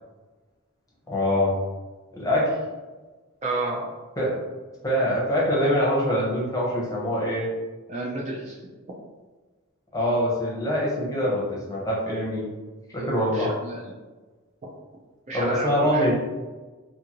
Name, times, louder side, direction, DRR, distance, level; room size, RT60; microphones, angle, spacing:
voice 1, 1.1-1.5 2.1-2.6 4.2-4.3 4.8-7.5 9.9-12.5 12.9-13.5 15.3-16.1, equal, 15° left, -5 dB, 0.7 m, -24 dB
voice 2, 3.4-3.9 7.9-8.6 13.0-13.8 15.3-16.1, right 2 dB, 30° right, -3 dB, 0.4 m, -31 dB
2.6 x 2.5 x 2.9 m, 1.3 s
head